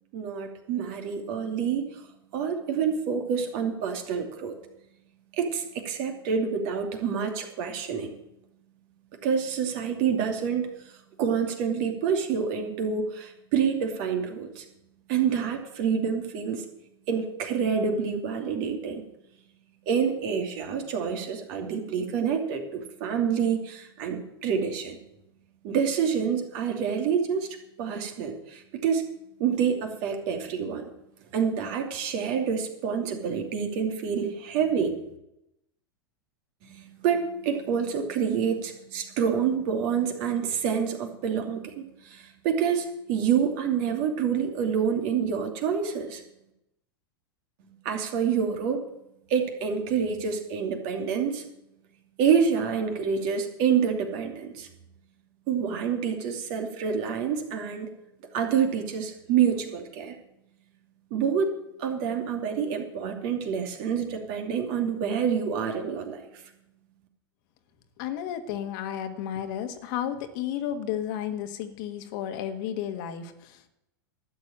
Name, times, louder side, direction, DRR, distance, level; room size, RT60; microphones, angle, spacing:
voice 1, 0.1-2.1 2.3-4.5 5.4-8.1 9.2-14.7 15.1-16.6 17.1-19.0 19.9-25.0 25.6-29.0 29.4-30.9 31.3-34.9 36.6-46.2 47.6-48.8 49.3-51.4 52.2-54.7 55.5-57.9 58.3-60.1 61.1-66.4, right 7 dB, 55° right, 3 dB, 2.6 m, -27 dB
voice 2, 68.0-73.7, left 10 dB, 55° left, 7 dB, 1.6 m, -32 dB
12.0 x 7.4 x 8.9 m, 0.86 s
hypercardioid pair, 100°, 13 cm